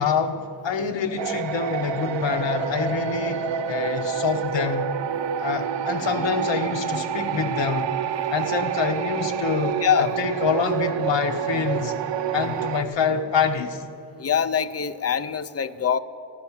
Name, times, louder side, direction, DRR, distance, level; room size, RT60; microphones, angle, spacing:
voice 1, 0.0-4.9 5.4-7.9 8.3-11.9 12.3-13.8, left 6 dB, 85° left, 6 dB, 1.0 m, -26 dB
sound 1, 1.2-12.8, right 8 dB, 80° right, 0.6 m, -28 dB
voice 2, 14.2-16.0, left 8 dB, 35° left, 14 dB, 0.4 m, -23 dB
14.5 x 11.0 x 7.2 m, 2.8 s
wide cardioid pair, 135°, 43 cm